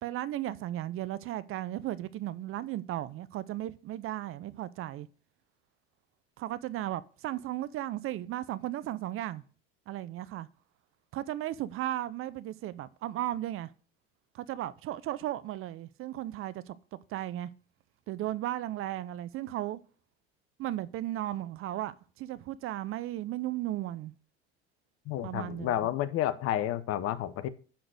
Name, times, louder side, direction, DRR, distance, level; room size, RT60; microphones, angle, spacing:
voice 1, 0.0-5.1 6.4-9.4 9.9-10.5 11.1-13.7 14.3-16.8 17.1-17.5 18.1-19.8 20.6-24.1 25.2-25.8, right 14 dB, 45° right, 0.6 m, -35 dB
voice 2, 25.1-27.5, left 12 dB, 50° left, 0.8 m, -30 dB
10.0 x 4.0 x 6.4 m
hypercardioid pair, 70°, 31 cm